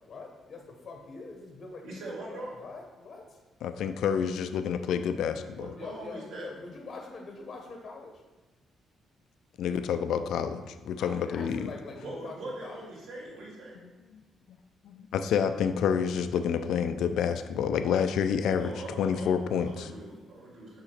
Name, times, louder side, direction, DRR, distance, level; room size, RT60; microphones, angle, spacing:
voice 1, 0.1-1.8 2.3-3.3 5.7-8.1 11.0-12.9, left 3 dB, 40° left, 2 dB, 0.9 m, -44 dB
voice 2, 1.8-2.5 5.5-6.7 12.0-13.8 18.6-19.4 19.6-20.8, right 2 dB, 75° right, -4 dB, 2.2 m, -41 dB
voice 3, 3.6-5.7 9.6-11.7 14.8-19.9, left 7 dB, 75° left, 9 dB, 0.4 m, -28 dB
6.0 x 4.9 x 4.3 m, 1.2 s
cardioid pair, 165°, 0 cm